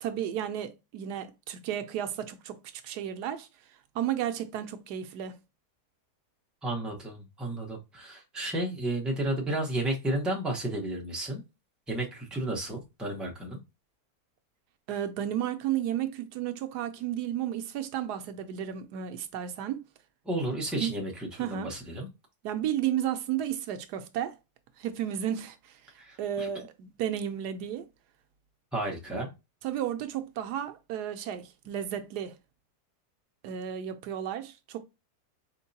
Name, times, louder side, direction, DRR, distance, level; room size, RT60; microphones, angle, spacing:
voice 1, 0.0-2.6 2.8-3.5 3.9-5.4 14.9-19.8 20.8-20.9 21.4-21.7 22.4-24.3 24.8-25.8 26.2-27.8 29.6-32.3 33.4-34.8, right 10 dB, 80° right, 1.2 m, -33 dB
voice 2, 6.6-11.4 11.9-13.6 20.2-22.1 26.0-26.5 28.7-29.3, right 1 dB, ahead, 0.9 m, -32 dB
4.5 x 3.6 x 2.7 m
omnidirectional pair, 1.7 m